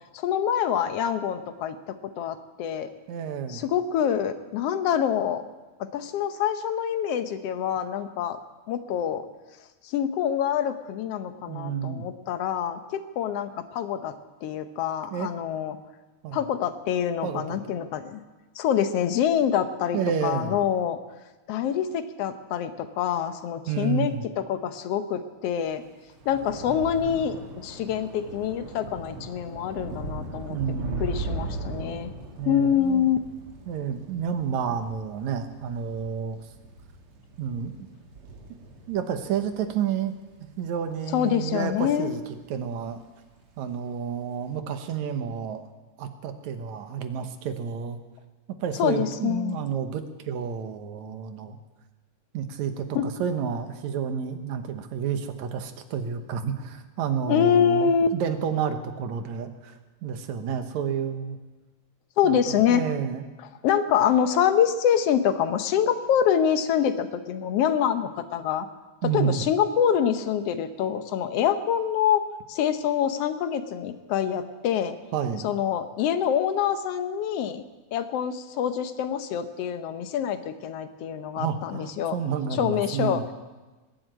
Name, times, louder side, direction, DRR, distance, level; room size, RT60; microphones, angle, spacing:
voice 1, 0.1-2.9 3.5-5.4 5.9-8.4 8.7-9.2 9.8-14.1 14.4-15.8 16.3-18.2 18.5-21.0 21.5-25.8 26.2-32.1 32.4-33.2 41.1-42.2 48.8-49.6 52.9-53.0 57.3-58.1 62.2-62.8 63.6-68.7 69.0-72.2 72.5-74.9 75.4-77.6 77.9-82.2 82.5-83.2, left 9 dB, 70° left, 10 dB, 1.7 m, -25 dB
voice 2, 3.1-3.6 11.5-12.0 15.1-15.3 16.2-16.4 17.2-17.8 19.9-20.6 23.7-24.2 30.5-31.1 32.4-33.1 33.7-36.4 37.4-37.9 38.9-40.1 40.6-42.2 42.5-43.0 43.6-45.6 46.0-48.0 48.6-51.6 52.3-61.4 62.2-63.3 69.0-69.4 75.1-75.5 81.4-83.3, right 7 dB, 80° right, 8 dB, 2.4 m, -30 dB
Thunder / Rain, 25.7-42.3 42.6-43.1 43.3-43.5, right 2 dB, 55° right, 2.3 m, -39 dB
20.0 x 7.8 x 9.1 m, 1.2 s
omnidirectional pair, 3.3 m